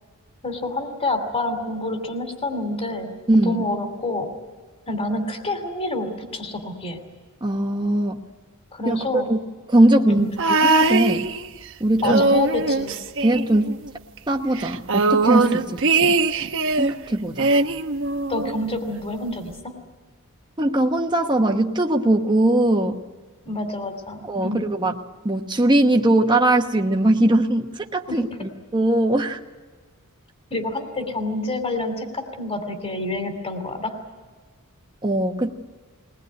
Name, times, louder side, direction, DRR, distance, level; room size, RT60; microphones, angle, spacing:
voice 1, 0.4-3.1 3.4-4.3 4.9-7.0 8.7-9.3 10.1-10.3 12.0-12.9 18.3-19.7 23.5-24.6 28.1-28.2 30.5-33.9, left 2 dB, 25° left, 6 dB, 2.7 m, -28 dB
voice 2, 3.3-3.7 7.4-8.3 8.9-9.4 9.7-11.3 11.8-12.2 13.2-13.8 14.3-16.2 16.8-17.5 20.6-23.0 24.2-25.0 25.2-29.4 35.0-35.5, right 1 dB, 20° right, 2 dB, 1.0 m, -20 dB
sound 1, 10.4-11.7 12.0-13.9 14.2-14.3 14.6-17.0 17.4-18.6 19.5-19.6, right 3 dB, 60° right, 1.1 m, -21 dB
22.0 x 19.5 x 9.6 m, 1.4 s
head